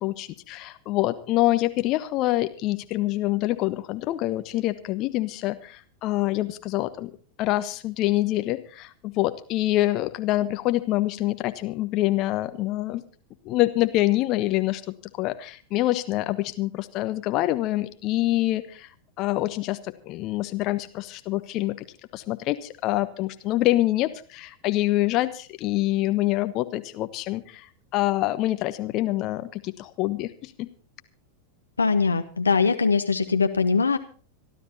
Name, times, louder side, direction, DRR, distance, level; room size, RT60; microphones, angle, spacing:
voice 1, 0.0-7.1 7.4-13.0 13.4-14.8 15.2-18.9 19.2-21.8 22.1-30.7, left 16 dB, 40° left, 10 dB, 1.3 m, -26 dB
voice 2, 31.8-34.0, left 5 dB, 75° left, 8 dB, 1.1 m, -22 dB
26.0 x 12.5 x 2.8 m, 0.40 s
figure-of-eight pair, 90°, 0 cm